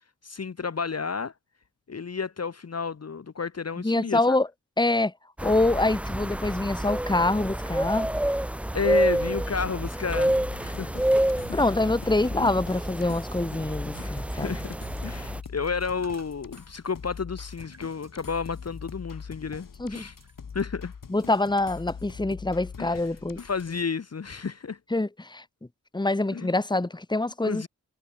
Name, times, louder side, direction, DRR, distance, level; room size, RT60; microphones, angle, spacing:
voice 1, 0.2-1.3 1.9-4.4 8.7-11.1 11.5-11.6 12.3-12.5 14.0-14.8 15.0-20.2 20.5-20.9 22.8-23.0 23.4-24.8 26.3-26.5 27.4-27.7, left 5 dB, 45° left, 1.0 m, -32 dB
voice 2, 3.8-4.5 4.8-5.1 5.4-8.1 11.5-14.5 19.8-20.1 21.1-23.4 24.9-25.4 25.9-27.7, left 2 dB, 10° left, 1.2 m, -25 dB
sound 1, 5.4-15.4, right 1 dB, 5° right, 0.5 m, -28 dB
sound 2, 10.1-23.8, left 6 dB, 65° left, 2.0 m, -42 dB
sound 3, 14.6-22.3, right 3 dB, 50° right, 7.9 m, -60 dB
cardioid pair, 50°, 35 cm